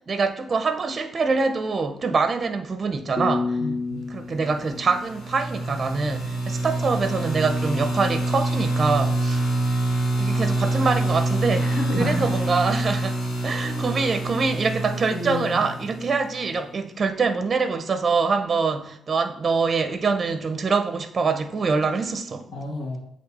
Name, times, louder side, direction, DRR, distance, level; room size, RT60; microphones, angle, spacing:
voice 1, 0.1-3.6 4.1-9.4 10.2-13.2 13.4-22.4, right 4 dB, 35° right, 0.6 m, -24 dB
sound 1, 3.2-6.1, left 3 dB, 15° left, 0.6 m, -30 dB
voice 2, 3.6-4.0 11.5-12.4 13.6-13.8 15.1-15.7 22.5-23.0, left 2 dB, 80° left, 1.6 m, -31 dB
sound 2, 4.6-16.4, right 2 dB, 55° left, 1.7 m, -26 dB
7.9 x 3.1 x 4.1 m
cardioid pair, 120°, 0 cm